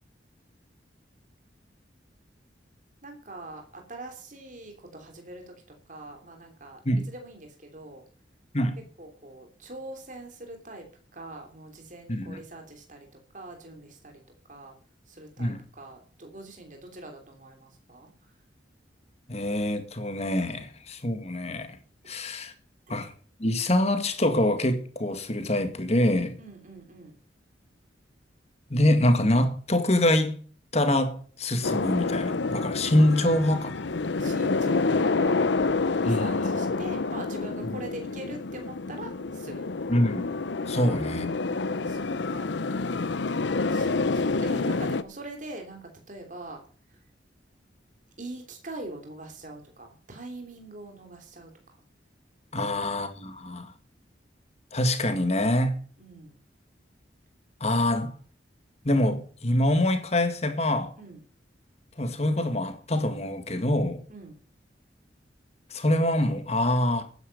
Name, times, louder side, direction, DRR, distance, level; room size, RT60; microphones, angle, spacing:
voice 1, 3.0-5.5 5.9-6.8 7.1-8.0 9.0-10.8 11.1-13.1 13.3-14.2 14.5-14.7 15.1-18.1 26.4-27.2 34.2-35.4 35.8-39.6 40.7-42.5 43.7-46.6 48.2-51.8 52.6-52.9 56.0-56.4 61.0-61.2 64.1-64.4, right 2 dB, 45° right, 3.2 m, -43 dB
voice 2, 12.1-12.4 15.4-15.6 19.3-21.7 22.1-22.5 22.9-23.1 23.4-26.3 28.7-30.3 30.7-33.9 36.1-36.5 39.9-40.3 40.7-41.3 52.5-53.7 54.7-55.8 57.6-58.1 58.8-60.9 62.0-64.0 65.7-67.0, left 1 dB, 35° left, 1.9 m, -25 dB
sound 1, 31.6-45.0, left 3 dB, 80° left, 0.7 m, -28 dB
12.5 x 10.0 x 5.5 m
head